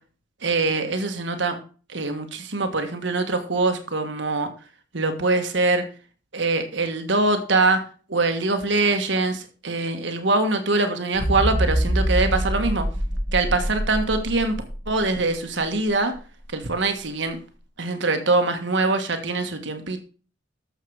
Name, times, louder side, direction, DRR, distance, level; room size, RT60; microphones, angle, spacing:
voice 1, 0.4-1.6 1.9-4.5 4.9-5.8 6.3-7.8 8.1-12.8 13.3-14.6 14.9-16.1 16.5-17.4 17.8-20.0, right 3 dB, 65° right, 6 dB, 1.5 m, -23 dB
sound 1, 11.1-15.2 15.7-15.9, equal, 65° left, 4.6 m, -25 dB
13.5 x 6.5 x 4.8 m, 0.38 s
head